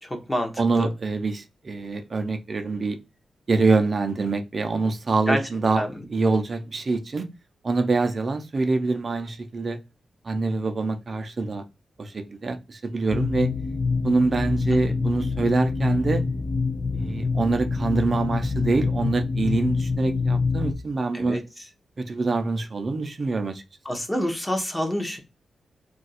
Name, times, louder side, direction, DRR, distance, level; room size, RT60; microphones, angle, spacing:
voice 1, 0.0-0.9 5.3-5.4 5.8-6.0 21.1-21.4 23.8-25.2, equal, 15° left, 0.7 m, -27 dB
voice 2, 0.6-3.0 3.5-5.8 6.1-7.3 7.6-9.8 10.2-11.6 12.0-13.5 14.0-16.2 16.9-21.4 22.0-23.6, right 3 dB, 45° right, 0.5 m, -25 dB
sound 1, 13.1-20.7, left 4 dB, 35° left, 0.4 m, -26 dB
2.4 x 2.3 x 4.0 m
wide cardioid pair, 110°, 0 cm